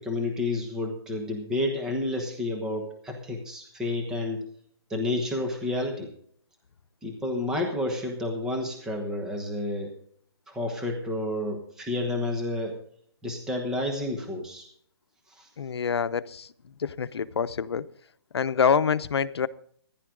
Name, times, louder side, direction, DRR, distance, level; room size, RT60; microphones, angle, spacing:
voice 1, 0.0-4.4 4.9-6.1 7.0-9.9 10.5-12.7 13.2-14.7 15.4-15.5, left 2 dB, 5° right, 2 dB, 1.1 m, -30 dB
voice 2, 15.6-16.5 16.8-17.9 18.3-19.5, left 6 dB, 75° left, 14 dB, 0.8 m, -26 dB
15.5 x 11.0 x 3.8 m, 0.62 s
hypercardioid pair, 175°, 14 cm